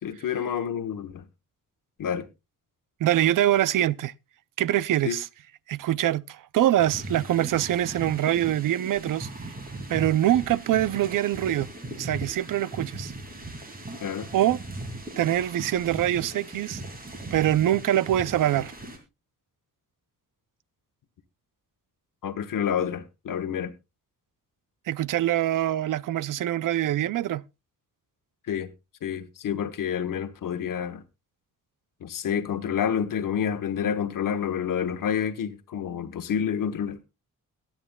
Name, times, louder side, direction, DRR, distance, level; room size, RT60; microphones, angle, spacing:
voice 1, 0.0-1.2 2.0-2.3 5.0-5.2 14.0-14.3 22.2-23.7 28.5-28.7 29.0-31.0 32.0-37.0, left 8 dB, 85° left, 1.1 m, -28 dB
voice 2, 3.0-4.1 4.6-5.3 5.7-9.3 9.9-11.7 12.0-13.1 14.3-14.6 15.2-16.8 17.3-18.7 24.9-27.4, right 12 dB, 75° right, 0.5 m, -24 dB
sound 1, 6.8-19.0, right 2 dB, 30° right, 2.3 m, -39 dB
22.0 x 8.8 x 2.2 m
wide cardioid pair, 175°, 32 cm